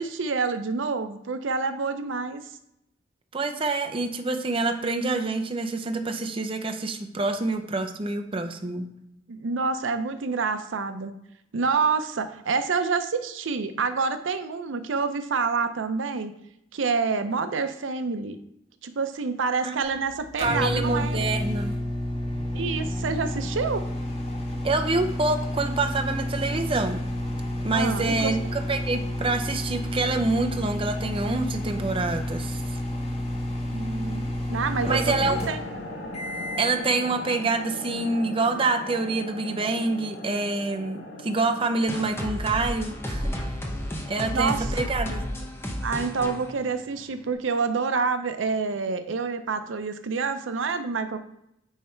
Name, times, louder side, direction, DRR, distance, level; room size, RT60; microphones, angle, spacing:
voice 1, 0.0-2.4 9.3-11.2 11.5-16.3 16.7-18.4 18.8-21.2 22.5-23.9 27.7-28.4 33.7-35.6 44.3-44.7 45.8-51.2, right 4 dB, 85° right, 9 dB, 0.6 m, -27 dB
voice 2, 3.3-8.9 19.6-19.8 20.4-21.7 24.6-27.0 27.6-32.6 34.8-35.4 36.6-43.4 44.1-45.2, right 3 dB, 30° right, 5 dB, 0.6 m, -26 dB
sound 1, 19.8-36.8, left 1 dB, 35° left, 1.5 m, -30 dB
sound 2, 35.0-42.2, left 1 dB, 60° left, 1.5 m, -38 dB
sound 3, 41.9-47.3, equal, 15° left, 0.9 m, -32 dB
9.1 x 3.3 x 4.5 m, 0.81 s
head